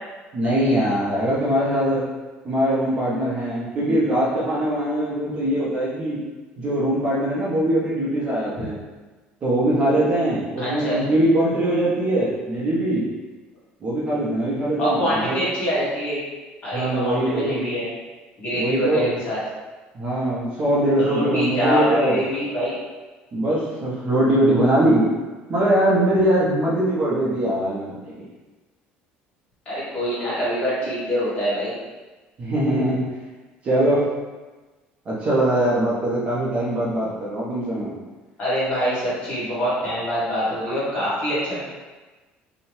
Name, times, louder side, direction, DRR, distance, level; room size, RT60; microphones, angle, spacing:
voice 1, 0.3-2.0 2.4-6.2 6.6-8.8 9.4-13.1 13.8-15.4 16.7-17.7 18.5-19.1 19.9-22.2 23.3-25.1 25.5-28.2 32.4-33.0 33.6-34.0 35.1-38.0, right 1 dB, 30° right, -6 dB, 0.5 m, -22 dB
voice 2, 10.6-11.0 14.8-16.2 16.6-17.8 18.4-19.4 21.0-22.8 23.5-23.7 29.6-31.7 38.4-41.6, equal, 30° left, -10 dB, 1.2 m, -24 dB
2.7 x 2.0 x 3.0 m, 1.2 s
cardioid pair, 165°, 4 cm